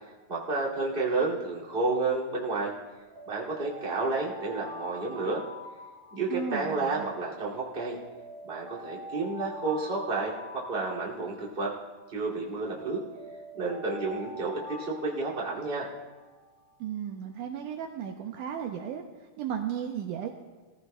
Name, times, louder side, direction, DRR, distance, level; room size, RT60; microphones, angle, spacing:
voice 1, 0.3-2.7 3.3-5.4 6.1-8.0 8.4-11.7 12.1-13.0 13.5-15.9, right 3 dB, 20° right, -6 dB, 1.7 m, -31 dB
Alarm, 3.0-7.1 7.7-12.1 12.7-16.5, equal, 50° right, 2.2 m, -45 dB
voice 2, 6.3-7.1 16.8-20.3, right 8 dB, 90° right, 3 dB, 1.8 m, -35 dB
23.0 x 15.0 x 2.2 m, 1.3 s
omnidirectional pair, 4.5 m